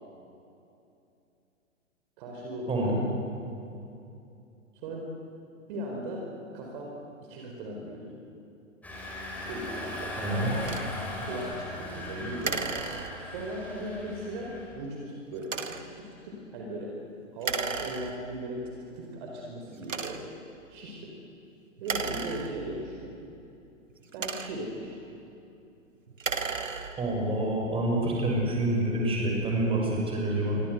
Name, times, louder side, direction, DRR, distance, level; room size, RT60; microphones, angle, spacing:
voice 1, 2.2-3.0 4.7-5.1 5.7-6.2 6.5-6.9 7.2-8.1 9.4-10.2 11.2-12.6 13.2-15.8 16.2-16.9 17.3-18.6 18.9-20.3 20.7-21.1 21.8-23.1 24.1-24.9, right 1 dB, 40° right, -1 dB, 4.8 m, -37 dB
voice 2, 2.7-3.0 10.2-10.7 27.0-30.6, right 1 dB, 15° right, -1 dB, 6.3 m, -27 dB
Engine, 8.8-14.7, left 1 dB, 5° left, 5.3 m, -38 dB
sound 1, 10.6-10.9 12.4-13.5 15.4-16.0 17.4-18.4 19.1-19.2 19.8-20.4 21.8-22.9 23.9-24.8 26.1-27.2, right 5 dB, 70° right, 1.9 m, -34 dB
27.5 x 24.5 x 8.1 m, 2.7 s
figure-of-eight pair, 115°, 40 cm